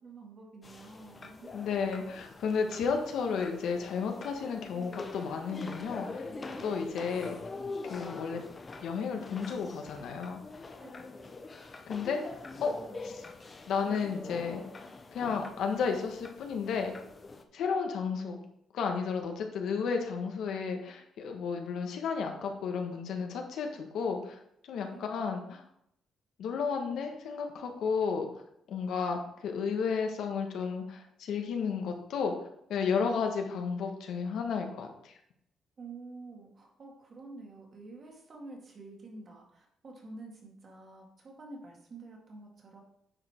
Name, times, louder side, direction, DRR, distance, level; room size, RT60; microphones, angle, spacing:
voice 1, 0.0-1.9 6.5-6.7 10.8-11.1 24.8-25.1 35.8-42.8, right 3 dB, 35° right, 0 dB, 2.0 m, -49 dB
sound 1, 0.6-17.4, left 3 dB, 25° left, 0.8 m, -44 dB
voice 2, 1.5-6.3 6.6-7.3 7.8-8.4 8.8-10.4 11.9-12.2 12.6-12.7 13.0-13.2 13.7-14.6 15.1-16.9 17.5-18.4 18.7-24.4 24.7-25.6 26.4-28.3 28.7-32.3 32.7-35.1, left 5 dB, 75° left, 3 dB, 1.4 m, -32 dB
9.6 x 5.1 x 4.4 m, 0.74 s
cardioid pair, 155°, 0 cm